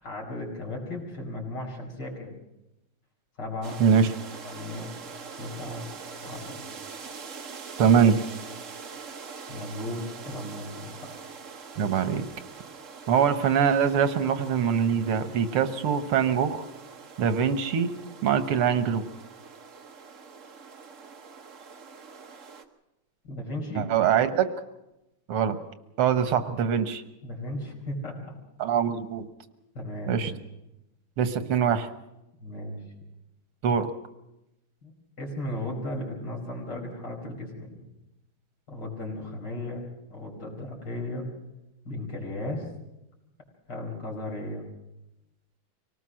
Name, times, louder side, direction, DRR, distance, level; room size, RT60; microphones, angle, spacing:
voice 1, 0.0-2.4 3.4-3.8 4.4-4.9 5.4-5.9 6.2-6.6 9.5-11.2 23.2-23.9 27.2-28.2 29.8-30.3 32.4-32.8 34.8-34.9 35.2-37.9 38.7-39.9 40.1-41.3 41.9-42.7 43.7-44.7, left 1 dB, 50° left, 0 dB, 5.4 m, -35 dB
sound 1, 3.6-22.6, right 5 dB, 45° right, 1.3 m, -44 dB
voice 2, 3.8-4.1 7.8-8.2 11.8-12.3 13.1-16.6 17.2-17.9 18.2-19.0 23.8-24.5 25.3-25.6 26.0-27.0 28.6-29.3 30.1-30.3 31.2-31.9 33.6-33.9, right 7 dB, 90° right, 10 dB, 2.1 m, -23 dB
24.5 x 18.5 x 6.3 m, 0.92 s
omnidirectional pair, 2.4 m